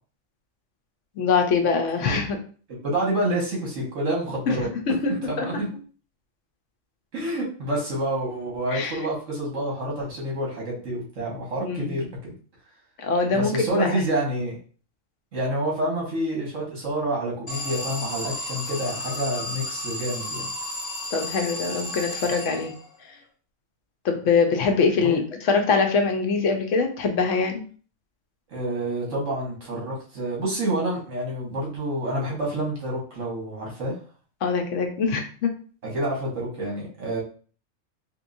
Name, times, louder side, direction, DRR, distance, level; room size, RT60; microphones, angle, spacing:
voice 1, 1.2-2.4 4.5-5.6 8.7-8.9 11.6-11.9 13.0-14.0 21.1-22.7 24.0-27.6 34.4-35.5, left 4 dB, 75° left, 5 dB, 0.9 m, -23 dB
voice 2, 2.7-4.7 5.1-5.7 7.1-12.3 13.3-14.6 15.3-20.5 24.9-25.2 28.5-33.9 35.8-37.2, right 1 dB, 70° right, -3 dB, 1.7 m, -28 dB
Alarm, 17.5-23.0, left 1 dB, 50° left, 1.7 m, -33 dB
3.6 x 2.9 x 2.6 m, 0.41 s
omnidirectional pair, 1.4 m